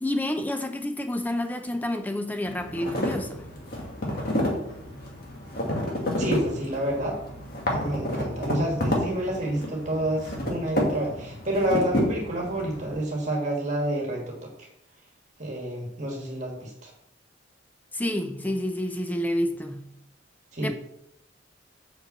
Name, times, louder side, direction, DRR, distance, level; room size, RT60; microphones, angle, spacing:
voice 1, 0.0-3.4 17.9-19.9 20.6-20.7, left 1 dB, 10° left, 0.6 m, -29 dB
sound 1, 2.4-12.9, left 1 dB, 50° left, 2.2 m, -30 dB
voice 2, 6.2-7.2 7.7-14.7 15.4-16.9 20.5-20.7, right 1 dB, 40° right, 1.6 m, -29 dB
6.3 x 5.6 x 7.2 m
head